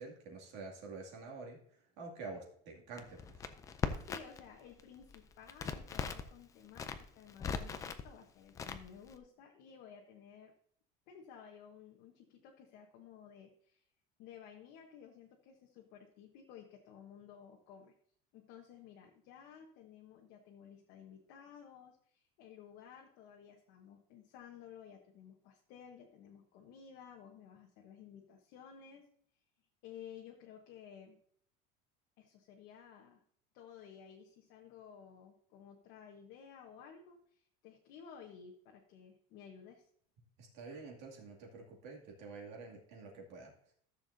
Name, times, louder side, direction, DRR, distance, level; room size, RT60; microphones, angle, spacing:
voice 1, 0.0-3.4 40.4-43.5, right 3 dB, 55° right, -1 dB, 2.5 m, -48 dB
Crackle, 3.0-4.5 4.7-6.3 6.7-8.0 8.6-9.2, left 6 dB, 15° left, 0.4 m, -39 dB
voice 2, 4.0-10.5 11.1-13.9 14.2-17.9 18.3-29.0 29.8-31.2 32.2-33.2 33.5-39.9, left 8 dB, 50° left, 1 dB, 1.2 m, -55 dB
14.0 x 7.0 x 2.7 m, 0.64 s
cardioid pair, 180°, 21 cm